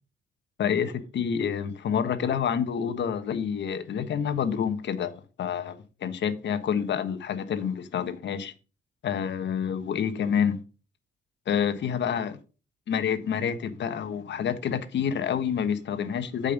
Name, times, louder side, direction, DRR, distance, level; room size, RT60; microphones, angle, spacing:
voice 1, 0.6-8.5 9.0-10.6 11.5-12.4 12.9-16.5, left 7 dB, 65° left, 1.3 m, -28 dB
8.8 x 5.4 x 5.4 m
cardioid pair, 90°, 20 cm